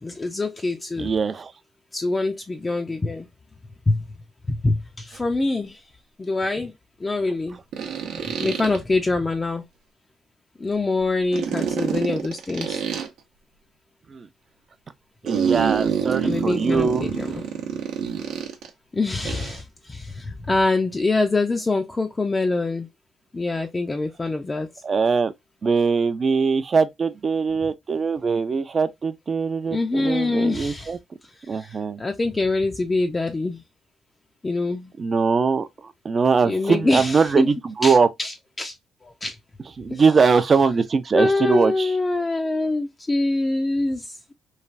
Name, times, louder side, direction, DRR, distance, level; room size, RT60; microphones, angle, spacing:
voice 1, 0.0-1.1 1.9-3.3 3.9-4.1 4.5-5.8 6.2-6.7 7.0-7.6 8.3-9.6 10.6-12.8 16.2-17.4 18.9-22.9 23.3-24.7 29.7-31.0 31.4-33.6 34.4-34.9 36.4-37.5 37.8-38.7 39.0-39.4 39.9-40.0 41.1-44.3, left 2 dB, 25° left, 0.4 m, -24 dB
voice 2, 1.0-1.5 14.1-14.3 15.2-17.1 24.8-25.3 25.6-31.0 31.5-32.0 35.0-35.7 36.0-38.1 39.8-41.9, right 5 dB, 40° right, 0.4 m, -21 dB
sound 1, 5.1-5.2 7.7-8.8 11.3-13.1 15.3-18.7 19.2-19.6, right 7 dB, 85° right, 0.7 m, -26 dB
3.2 x 2.2 x 2.4 m
cardioid pair, 90°, 0 cm